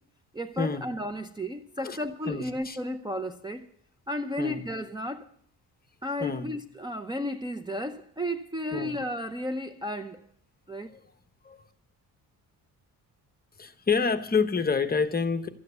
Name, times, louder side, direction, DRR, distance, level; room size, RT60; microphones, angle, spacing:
voice 1, 0.3-3.7 4.1-5.3 6.0-10.2 10.7-10.9, equal, 10° right, 0.8 m, -33 dB
voice 2, 2.3-2.8 4.4-4.6 6.2-6.5 8.7-9.0 10.9-11.0 11.4-11.6 13.6-15.5, left 5 dB, 25° left, 1.1 m, -28 dB
13.5 x 9.4 x 8.1 m
cardioid pair, 115°, 36 cm